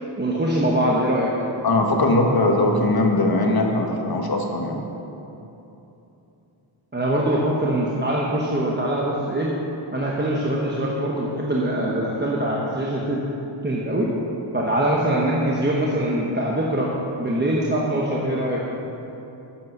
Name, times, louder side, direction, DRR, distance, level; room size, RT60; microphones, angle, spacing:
voice 1, 0.2-1.3 6.9-9.5 9.9-13.2 13.6-14.1 14.5-16.9 17.2-18.6, right 1 dB, 20° right, -4 dB, 1.1 m, -23 dB
voice 2, 1.6-4.8, left 2 dB, 50° left, 2 dB, 1.4 m, -20 dB
10.5 x 8.5 x 6.6 m, 3.0 s
wide cardioid pair, 145°, 49 cm